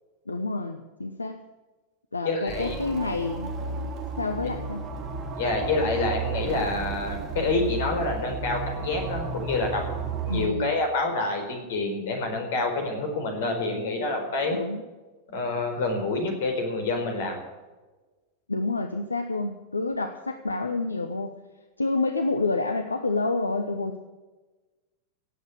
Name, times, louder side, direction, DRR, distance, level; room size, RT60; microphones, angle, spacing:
voice 1, 0.3-1.4 2.1-3.5 4.2-4.8 10.3-10.7 14.5-14.8 18.5-21.3 21.8-24.0, left 3 dB, 80° left, 8 dB, 0.9 m, -28 dB
voice 2, 2.2-2.8 5.3-9.9 10.2-14.6 15.3-17.4, left 2 dB, 55° left, 4 dB, 4.4 m, -27 dB
sound 1, 2.5-10.5, right 4 dB, 35° right, 2.2 m, -33 dB
17.5 x 8.2 x 8.2 m, 1.2 s
figure-of-eight pair, 90°, 0 cm